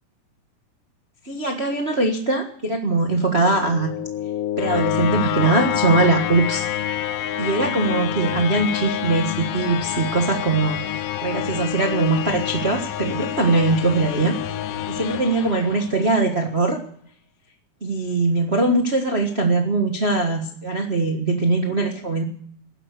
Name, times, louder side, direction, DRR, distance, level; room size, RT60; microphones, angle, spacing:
voice 1, 1.2-3.9 4.6-6.7 7.4-14.4 14.9-16.8 17.8-22.2, right 3 dB, 75° right, 2 dB, 0.5 m, -21 dB
sound 1, 3.2-16.3, left 11 dB, 75° left, 2.3 m, -27 dB
19.5 x 11.0 x 6.7 m, 0.63 s
omnidirectional pair, 4.0 m